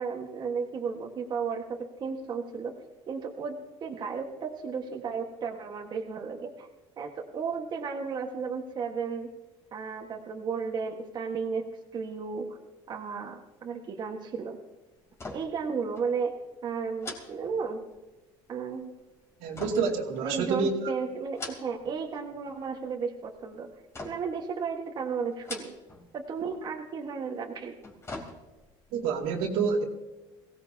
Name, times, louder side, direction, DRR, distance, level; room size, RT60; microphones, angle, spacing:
voice 1, 0.0-2.7 3.1-6.7 7.0-9.3 9.7-11.6 11.9-12.6 12.9-14.6 15.3-17.8 18.5-19.0 20.2-23.7 24.0-25.7 26.1-27.7, right 5 dB, 40° right, 0 dB, 1.5 m, -34 dB
sound 1, 15.1-15.7 16.0-16.1 17.0-18.1 19.5-20.7 21.2-22.0 22.3-22.9 23.9-24.4 25.3-26.1 26.4-26.5 27.6-28.8 29.2-29.3, left 2 dB, 25° left, 3.2 m, -42 dB
voice 2, 19.4-20.7 28.9-29.8, right 5 dB, 80° right, 1 dB, 2.4 m, -28 dB
22.0 x 17.0 x 2.8 m, 1.1 s
cardioid pair, 125°, 11 cm